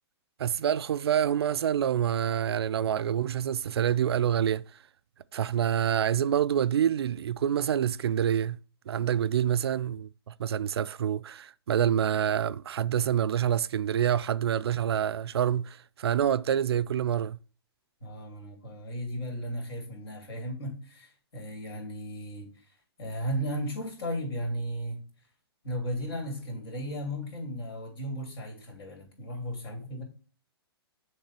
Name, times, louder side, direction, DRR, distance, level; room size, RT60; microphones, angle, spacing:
voice 1, 0.4-4.6 5.3-8.6 8.9-17.4, right 9 dB, 70° right, 0.4 m, -27 dB
voice 2, 18.0-22.5 23.0-25.0 25.6-30.0, equal, 65° left, 3.1 m, -35 dB
7.3 x 3.2 x 4.5 m
hypercardioid pair, 125°, 14 cm